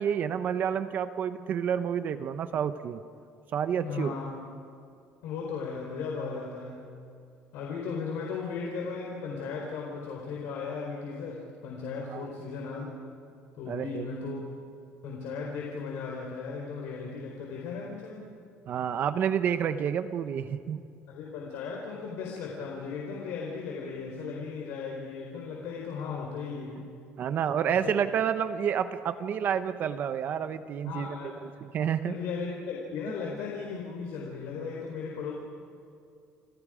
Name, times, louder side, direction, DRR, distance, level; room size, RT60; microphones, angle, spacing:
voice 1, 0.0-3.0 3.5-4.1 12.1-12.3 13.7-14.1 18.7-20.8 27.2-31.1 31.4-32.1, right 8 dB, 45° right, 10 dB, 0.9 m, -29 dB
voice 2, 3.8-4.3 5.2-6.9 7.5-12.9 13.5-14.4 15.0-18.2 21.1-26.8 27.7-27.9 30.8-31.4 32.1-35.3, left 5 dB, 75° left, -1 dB, 4.4 m, -36 dB
29.5 x 27.0 x 5.1 m, 2.4 s
cardioid pair, 160°, 4 cm